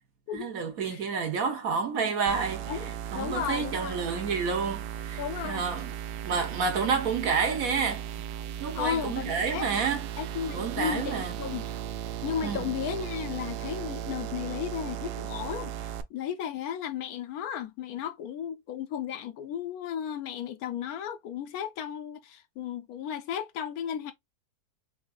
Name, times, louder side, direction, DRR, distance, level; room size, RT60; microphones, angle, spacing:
voice 1, 0.3-2.6 3.1-5.9 6.2-8.1 8.6-10.1 10.5-11.3 12.4-12.7, right 5 dB, 60° right, 1.4 m, -29 dB
sound 1, 2.3-16.0, right 10 dB, 85° right, 1.1 m, -36 dB
voice 2, 2.7-4.0 5.2-5.7 8.7-9.7 10.2-11.7 12.2-24.1, left 9 dB, 70° left, 1.0 m, -34 dB
5.0 x 2.8 x 2.3 m
omnidirectional pair, 1.7 m